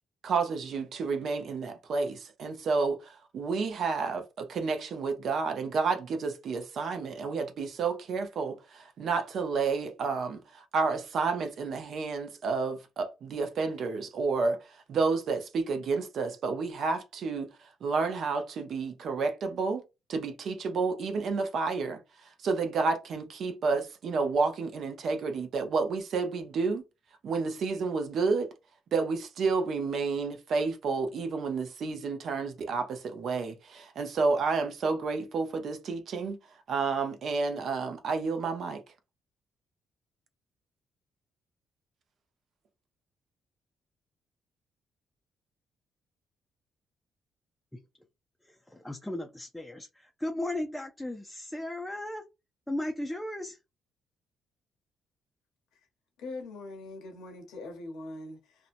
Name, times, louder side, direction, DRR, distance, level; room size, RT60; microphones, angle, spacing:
voice 1, 0.2-19.8 20.1-26.8 27.2-28.5 28.9-36.4 36.7-38.8, right 4 dB, 65° right, 0.6 m, -30 dB
voice 2, 48.4-52.2 52.7-53.6, left 1 dB, 5° left, 0.4 m, -36 dB
voice 3, 56.2-58.7, left 2 dB, 85° left, 0.8 m, -42 dB
2.6 x 2.1 x 2.5 m
cardioid pair, 90°, 0 cm